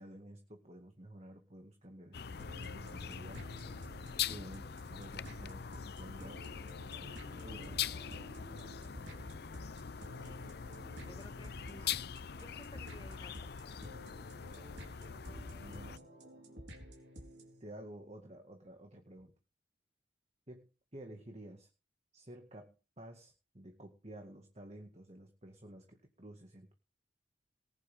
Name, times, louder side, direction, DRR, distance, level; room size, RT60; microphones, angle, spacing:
voice 1, 0.0-3.8 4.3-7.9 15.6-16.1 17.6-19.4 20.5-21.7 22.1-26.7, right 1 dB, 35° right, 4 dB, 2.0 m, -52 dB
sound 1, 2.1-16.0, left 8 dB, 55° left, 0.6 m, -42 dB
sound 2, 2.4-17.6, equal, 65° right, 4.4 m, -52 dB
voice 2, 10.1-13.9, left 1 dB, 25° left, 8 dB, 1.3 m, -57 dB
20.0 x 11.0 x 3.7 m, 0.32 s
head